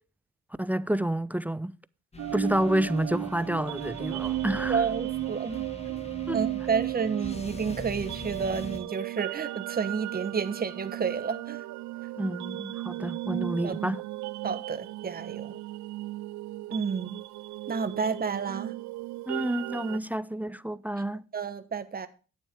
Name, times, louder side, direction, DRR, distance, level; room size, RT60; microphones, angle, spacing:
voice 1, 0.6-1.7 2.3-4.8 6.3-6.4 12.2-14.0 19.3-21.2, right 1 dB, 5° right, 0.4 m, -29 dB
sound 1, 2.1-8.8, left 3 dB, 20° left, 1.4 m, -43 dB
sound 2, 2.2-20.0, right 17 dB, 70° right, 0.4 m, -35 dB
voice 2, 4.7-11.6 13.6-13.7 14.4-15.6 16.7-17.2 17.7-18.7 21.3-22.1, right 6 dB, 30° right, 1.1 m, -31 dB
10.0 x 9.0 x 3.4 m
cardioid pair, 90°, 30 cm